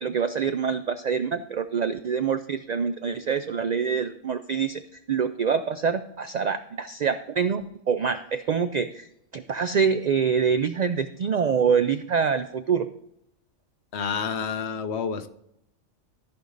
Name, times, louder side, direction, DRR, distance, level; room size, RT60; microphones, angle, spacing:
voice 1, 0.0-4.8 5.1-9.1 9.3-12.9, right 6 dB, 70° right, 10 dB, 0.4 m, -25 dB
voice 2, 13.9-15.3, left 6 dB, 65° left, 10 dB, 1.0 m, -29 dB
14.0 x 5.2 x 3.9 m, 0.80 s
omnidirectional pair, 1.3 m